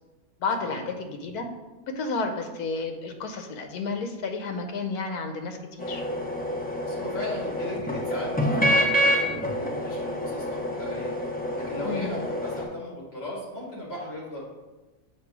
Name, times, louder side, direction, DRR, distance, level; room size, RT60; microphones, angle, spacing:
voice 1, 0.4-1.5 2.0-6.0 11.8-12.1, left 4 dB, 85° left, 5 dB, 1.2 m, -31 dB
sound 1, 5.8-12.6, equal, 10° left, 0.5 m, -27 dB
voice 2, 6.8-11.1 11.3-14.4, left 1 dB, 40° left, -5 dB, 2.2 m, -37 dB
7.3 x 2.7 x 5.8 m, 1.1 s
omnidirectional pair, 1.6 m